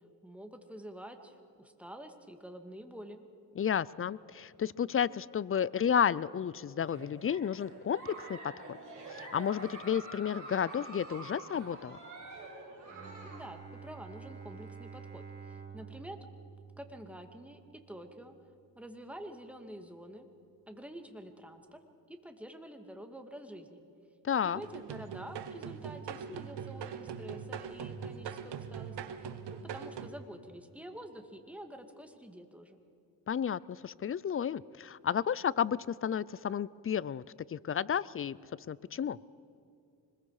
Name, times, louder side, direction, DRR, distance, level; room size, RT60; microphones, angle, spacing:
voice 1, 0.2-3.2 13.2-16.2 16.8-17.6 17.9-18.3 18.8-20.3 20.7-21.8 22.1-23.8 24.4-29.0 29.5-32.8, right 1 dB, 5° right, 6 dB, 2.1 m, -48 dB
voice 2, 3.6-8.8 9.1-12.0 24.2-24.6 33.3-37.2 37.5-38.4 38.7-39.2, left 8 dB, 35° left, 21 dB, 0.4 m, -32 dB
Giggle, 6.8-13.5, right 2 dB, 45° right, 6.8 m, -47 dB
Bowed string instrument, 12.9-18.6, right 6 dB, 25° right, 4.2 m, -50 dB
sound 1, 24.5-30.1, right 7 dB, 75° right, 1.3 m, -42 dB
25.5 x 21.0 x 4.9 m, 2.7 s
cardioid pair, 85°, 42 cm